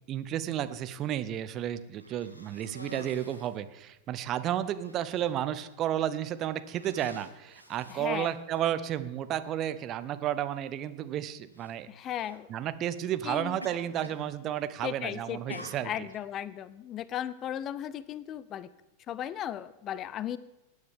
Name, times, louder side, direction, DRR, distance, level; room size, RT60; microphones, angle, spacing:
voice 1, 0.1-11.9 12.5-15.9, right 11 dB, 35° right, 13 dB, 0.7 m, -32 dB
Cough, 2.0-3.6 4.3-4.4 4.8-5.3 6.0-6.3 6.7-8.6 9.6-9.7 11.5-11.7 12.1-12.4 13.6-14.3 14.6-15.0 15.5-16.2, equal, 85° left, 1.5 m, -47 dB
voice 2, 7.9-8.3 11.9-12.5 13.2-13.6 14.8-18.7 19.1-20.4, left 11 dB, 30° left, 18 dB, 0.5 m, -36 dB
20.0 x 9.6 x 3.6 m, 0.98 s
figure-of-eight pair, 90°, 0 cm